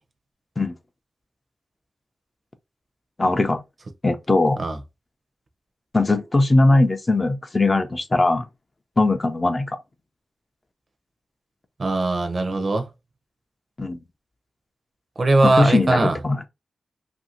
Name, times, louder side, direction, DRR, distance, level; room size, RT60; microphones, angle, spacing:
voice 1, 3.2-3.6 4.0-4.6 5.9-8.4 9.0-9.8 13.8-14.0 15.4-16.4, left 2 dB, 25° left, 0.4 m, -19 dB
voice 2, 11.8-12.9 15.2-16.2, right 2 dB, 45° right, 0.6 m, -20 dB
2.7 x 2.5 x 2.8 m
wide cardioid pair, 105°, 0 cm